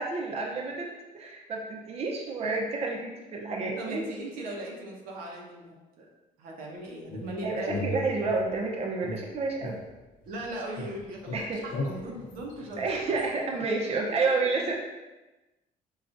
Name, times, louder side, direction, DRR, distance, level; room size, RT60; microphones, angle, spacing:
voice 1, 0.0-4.1 7.4-9.8 11.3-11.6 12.8-14.7, right 3 dB, 45° right, -1 dB, 0.6 m, -30 dB
voice 2, 3.8-6.1 6.4-8.1 10.3-12.8, right 1 dB, 85° right, -1 dB, 0.7 m, -38 dB
sound 1, 7.1-8.6 9.0-10.5 10.8-13.3, left 2 dB, 70° left, 0.7 m, -37 dB
4.6 x 2.3 x 2.5 m, 1.1 s
cardioid pair, 85°, 15 cm